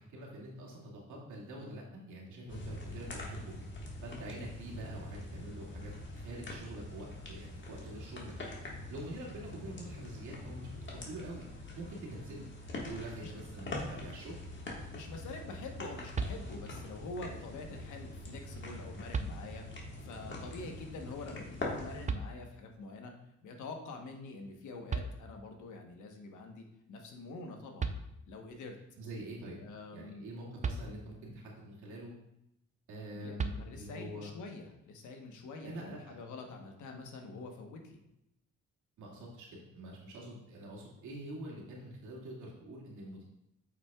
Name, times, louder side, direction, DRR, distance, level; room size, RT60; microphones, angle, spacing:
voice 1, 0.0-3.5 4.0-8.4 8.9-11.5 11.8-12.4 12.9-14.4 29.0-29.6 29.9-32.1 32.9-34.3 35.6-36.2 39.0-43.2, right 1 dB, 80° right, -4 dB, 2.3 m, -45 dB
sound 1, 2.5-22.1, left 1 dB, 40° left, 1.7 m, -44 dB
voice 2, 14.9-19.6 20.0-23.1 23.4-28.0 28.3-28.8 29.6-30.3 33.1-38.0, left 3 dB, 75° left, 3 dB, 1.2 m, -46 dB
sound 2, 16.1-16.9 18.4-18.5 19.1-19.9 22.1-22.8 24.6-24.7 24.9-25.7 27.4-27.5 27.8-28.5 30.6-31.4 33.4-34.1, right 4 dB, 25° right, 0.5 m, -38 dB
8.1 x 6.0 x 2.4 m, 0.83 s
cardioid pair, 90°, 30 cm